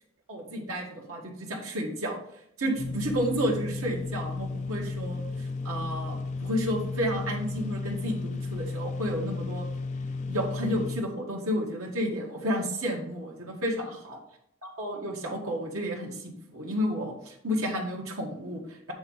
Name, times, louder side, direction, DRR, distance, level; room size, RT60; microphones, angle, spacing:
voice 1, 0.3-2.2 2.6-9.6 10.3-14.2 14.8-18.9, equal, 80° right, -1 dB, 1.6 m, -31 dB
sound 1, 2.8-11.0, left 3 dB, 35° left, 0.4 m, -34 dB
8.1 x 3.8 x 5.5 m, 0.71 s
head